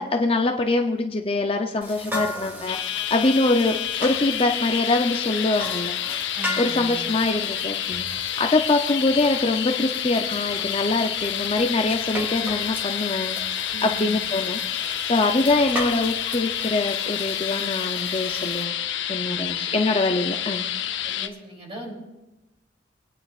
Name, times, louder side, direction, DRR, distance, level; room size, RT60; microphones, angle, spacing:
voice 1, 0.0-6.0 6.6-8.1 8.4-14.6 15.1-18.7 19.1-20.7, left 2 dB, 30° left, 4 dB, 0.6 m, -24 dB
sound 1, 1.8-18.6, left 1 dB, 10° right, 2.3 m, -37 dB
sound 2, 2.7-21.3, left 10 dB, 75° left, 0.7 m, -29 dB
voice 2, 6.3-7.0 13.7-14.2 19.2-19.7 21.0-21.9, equal, 30° right, -1 dB, 3.0 m, -39 dB
26.0 x 9.6 x 2.4 m, 1.0 s
head